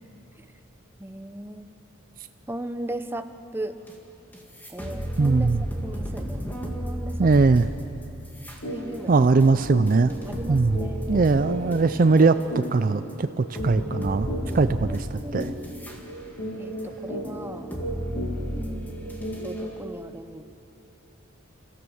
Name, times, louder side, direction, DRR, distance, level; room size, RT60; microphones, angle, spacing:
voice 1, 1.0-1.7 2.5-3.8 4.7-5.5 5.8-7.3 8.7-9.3 10.3-11.3 14.8-15.6 16.6-17.7 18.5-19.2 19.4-20.4, right 1 dB, 10° right, 8 dB, 0.7 m, -37 dB
sound 1, 3.9-4.0 4.3-12.7 13.1-13.2 13.6-16.0 16.4-19.6, equal, 10° left, 2.1 m, -34 dB
voice 2, 5.2-5.6 7.2-7.7 9.1-10.1 10.5-10.8 11.1-14.3 14.5-15.5, right 3 dB, 45° right, 11 dB, 0.4 m, -20 dB
sound 2, 8.6-8.8 9.1-9.3 9.7-19.9, equal, 65° left, 7.1 m, -35 dB
28.0 x 15.5 x 7.1 m, 2.9 s
head